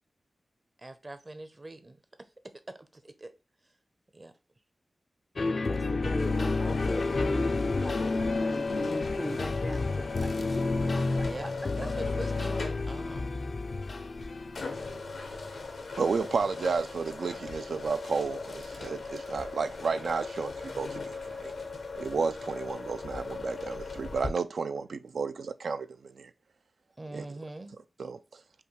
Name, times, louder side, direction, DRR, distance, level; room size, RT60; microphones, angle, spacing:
voice 1, 0.8-2.9 3.2-3.3 4.1-4.3 11.2-11.5 11.8-13.3 27.0-27.8, right 2 dB, 40° right, 0.6 m, -43 dB
sound 1, 5.4-15.0, left 3 dB, 65° left, 0.4 m, -30 dB
voice 2, 5.6-12.0, equal, ahead, 0.4 m, -39 dB
sound 2, 6.2-24.3, left 4 dB, 85° left, 0.8 m, -38 dB
voice 3, 16.0-21.5 21.9-26.3 27.1-27.3 28.0-28.2, right 5 dB, 80° right, 0.3 m, -32 dB
5.5 x 2.3 x 3.2 m
cardioid pair, 50°, 0 cm